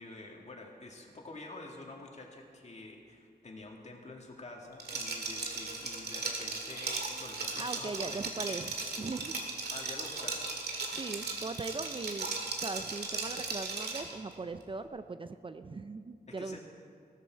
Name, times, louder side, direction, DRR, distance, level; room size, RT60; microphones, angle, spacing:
voice 1, 0.0-8.6 9.7-10.6 16.3-16.6, left 2 dB, 45° left, 0 dB, 2.1 m, -48 dB
Liquid, 4.8-14.1, right 3 dB, 90° right, 1.9 m, -37 dB
voice 2, 7.5-9.4 10.9-12.3 12.6-16.6, right 3 dB, 35° right, 10 dB, 0.5 m, -40 dB
16.5 x 13.5 x 4.6 m, 2.2 s
wide cardioid pair, 100°, 16 cm